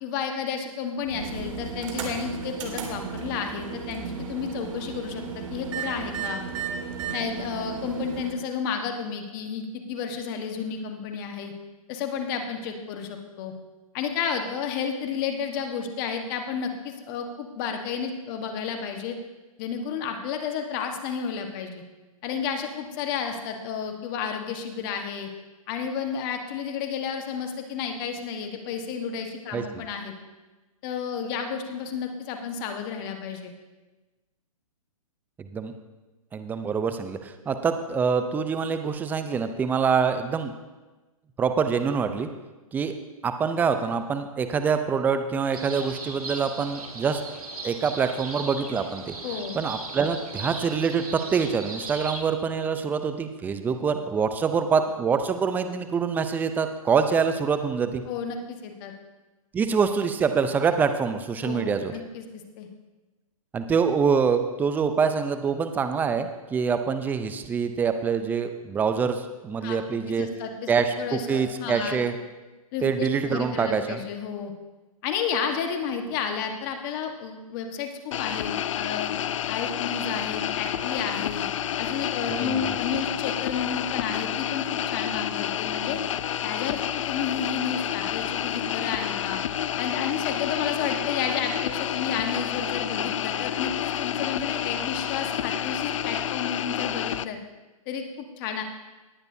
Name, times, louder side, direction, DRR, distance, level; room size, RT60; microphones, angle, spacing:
voice 1, 0.0-6.4 7.1-11.5 11.9-13.5 13.9-19.2 19.6-21.8 22.2-25.3 25.7-30.1 30.8-33.5 49.2-49.6 58.1-58.9 61.4-62.3 62.6-62.7 69.6-69.8 70.1-70.5 71.0-72.0 72.7-74.5 75.0-79.1 79.5-81.4 81.8-86.0 86.4-89.4 89.8-97.4 97.9-98.6, left 6 dB, 35° left, 5 dB, 1.4 m, -31 dB
sound 1, 1.0-8.3, right 6 dB, 55° right, 2.0 m, -34 dB
voice 2, 29.5-29.8 35.4-35.8 36.3-40.5 41.4-42.3 42.7-43.0 43.2-47.2 47.6-49.1 49.5-58.0 59.5-61.9 63.5-70.3 70.7-72.1 72.8-74.0 82.4-82.8, right 6 dB, 10° right, 9 dB, 0.5 m, -25 dB
sound 2, 45.5-52.2, right 3 dB, 80° right, 1.9 m, -38 dB
sound 3, 78.1-97.2, left 10 dB, 60° left, 0.5 m, -29 dB
18.5 x 8.9 x 2.8 m, 1.2 s
hypercardioid pair, 135°, 19 cm